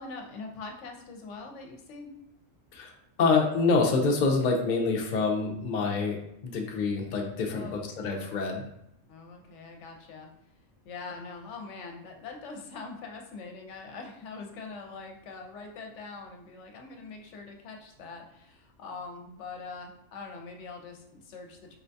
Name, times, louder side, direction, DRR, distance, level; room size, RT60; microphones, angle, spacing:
voice 1, 0.0-2.1 7.5-8.2 9.1-10.3 10.8-21.8, left 4 dB, 75° left, 3 dB, 0.9 m, -43 dB
voice 2, 3.2-8.6, left 4 dB, 55° left, 1 dB, 0.5 m, -26 dB
4.4 x 2.2 x 2.6 m, 0.79 s
omnidirectional pair, 1.3 m